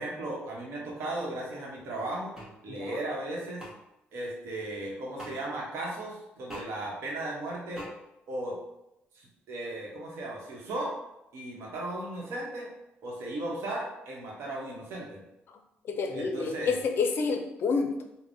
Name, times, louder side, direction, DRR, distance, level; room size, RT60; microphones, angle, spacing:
voice 1, 0.0-2.3 2.6-3.6 4.1-7.8 8.3-8.6 9.1-10.9 11.3-12.7 13.0-15.2 16.1-16.8, right 1 dB, 70° right, -2 dB, 0.9 m, -36 dB
sound 1, 2.3-2.5 3.6-3.7 5.2-5.4 6.5-6.7 7.7-7.9, right 1 dB, 10° right, 1.0 m, -41 dB
voice 2, 2.7-3.0 15.8-18.0, left 4 dB, 60° left, 5 dB, 0.4 m, -29 dB
3.4 x 2.1 x 2.6 m, 0.88 s
cardioid pair, 80°, 4 cm